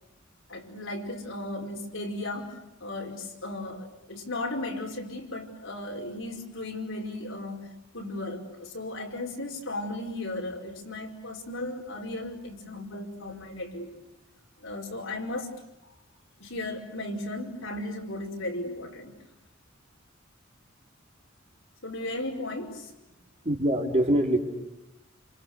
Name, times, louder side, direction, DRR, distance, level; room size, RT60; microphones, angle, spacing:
voice 1, 0.5-13.9 14.6-15.5 15.8-15.9 16.4-19.2 21.8-22.9, left 2 dB, 75° left, 1 dB, 5.2 m, -36 dB
voice 2, 23.4-24.4, right 1 dB, 35° right, 0 dB, 4.7 m, -23 dB
29.5 x 28.5 x 6.6 m, 0.87 s
head